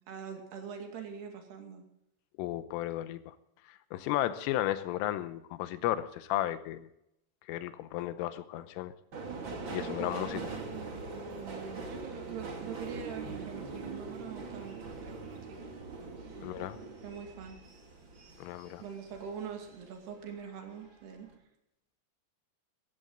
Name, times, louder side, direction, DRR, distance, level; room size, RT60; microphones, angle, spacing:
voice 1, 0.0-1.8 9.9-10.3 11.9-15.6 16.0-16.1 17.0-17.6 18.8-21.3, right 7 dB, 60° right, 4 dB, 4.1 m, -44 dB
voice 2, 2.4-3.3 3.7-6.9 7.5-8.9 9.7-10.5 16.4-16.8 18.4-18.8, left 13 dB, 85° left, 12 dB, 3.4 m, -34 dB
Subway metro underground, 9.1-19.8 20.2-20.9 21.2-21.3, right 4 dB, 40° right, 1.9 m, -42 dB
16.5 x 15.0 x 3.9 m, 0.79 s
omnidirectional pair, 5.7 m